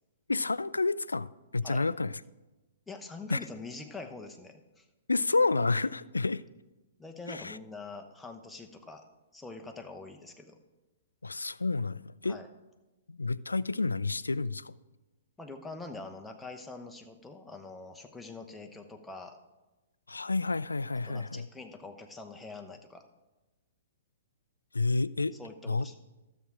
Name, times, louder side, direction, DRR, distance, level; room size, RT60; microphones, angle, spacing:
voice 1, 0.3-2.2 3.3-3.4 5.1-6.4 7.3-7.6 11.2-12.4 13.1-14.8 20.1-21.5 24.7-25.4 25.7-25.9, left 3 dB, 85° left, 0.3 m, -30 dB
voice 2, 2.9-4.8 7.0-9.0 9.3-10.6 12.2-12.5 15.4-19.4 21.0-23.1 25.4-25.9, left 3 dB, 5° left, 1.0 m, -44 dB
12.5 x 7.3 x 4.8 m
figure-of-eight pair, 120°, 0 cm